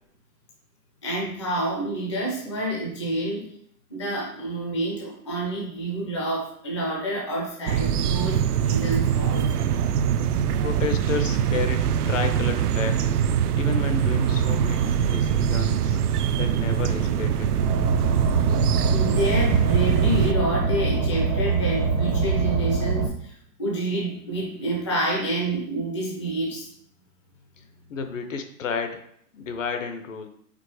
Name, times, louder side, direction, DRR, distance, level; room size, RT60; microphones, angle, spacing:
voice 1, 1.0-3.5 3.9-9.8 18.9-26.7, right 1 dB, 20° left, -3 dB, 0.5 m, -28 dB
sound 1, 7.7-20.3, right 8 dB, 70° right, 0.5 m, -23 dB
voice 2, 10.6-13.2 13.5-16.0 16.4-17.5 27.6-27.7 27.9-29.0 29.3-30.3, left 5 dB, 50° left, 7 dB, 0.8 m, -31 dB
Car, 17.6-23.1, right 4 dB, 90° right, 1.7 m, -24 dB
5.1 x 4.0 x 4.7 m, 0.66 s
hypercardioid pair, 175°, 48 cm